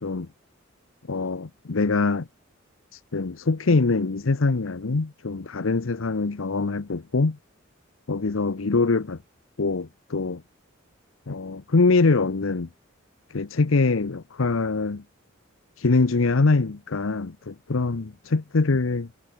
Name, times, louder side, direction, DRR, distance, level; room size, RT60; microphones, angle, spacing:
voice 1, 1.1-2.3 2.9-7.4 8.1-9.2 9.6-10.4 11.3-12.7 13.3-15.0 15.8-19.1, left 3 dB, 80° left, 0.8 m, -23 dB
head